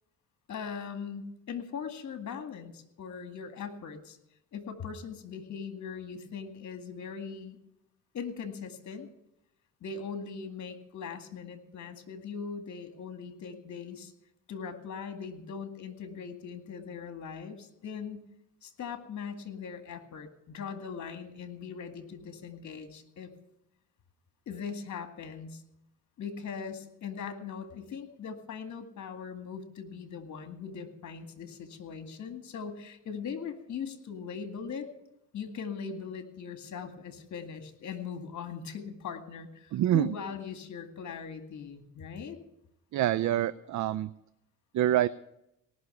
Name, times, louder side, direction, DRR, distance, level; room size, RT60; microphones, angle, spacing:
voice 1, 0.5-4.2 4.5-7.6 8.1-9.1 9.8-14.1 14.5-18.2 18.6-23.3 24.5-25.6 26.2-34.9 35.3-42.4, left 6 dB, 55° left, 7 dB, 2.2 m, -40 dB
voice 2, 39.7-40.1 42.9-44.1 44.7-45.1, right 13 dB, 55° right, 16 dB, 0.5 m, -26 dB
18.5 x 6.3 x 9.1 m, 0.83 s
supercardioid pair, 80°, 34 cm